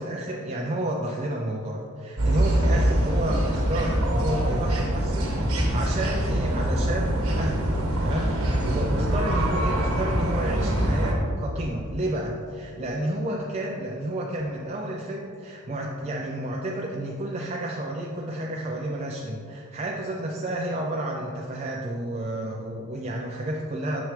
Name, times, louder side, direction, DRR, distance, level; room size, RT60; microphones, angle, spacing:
voice 1, 0.0-7.7 8.0-24.0, right 1 dB, 30° right, -1 dB, 0.4 m, -31 dB
sound 1, 2.2-11.1, right 1 dB, 75° right, 1.2 m, -24 dB
6.2 x 6.1 x 3.2 m, 2.4 s
head